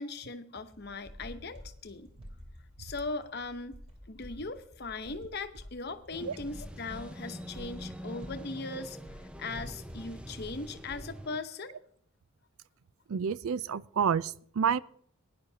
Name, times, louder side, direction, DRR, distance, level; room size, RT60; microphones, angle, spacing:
voice 1, 0.0-2.1 2.8-3.8 4.1-9.0 9.4-11.7, left 3 dB, 50° left, 9 dB, 0.9 m, -39 dB
sound 1, 0.6-11.2, equal, 25° right, 2.9 m, -50 dB
sound 2, 6.1-11.4, equal, 5° right, 0.5 m, -45 dB
voice 2, 13.1-14.8, right 7 dB, 75° right, 18 dB, 0.4 m, -29 dB
18.5 x 10.5 x 2.8 m, 0.62 s
head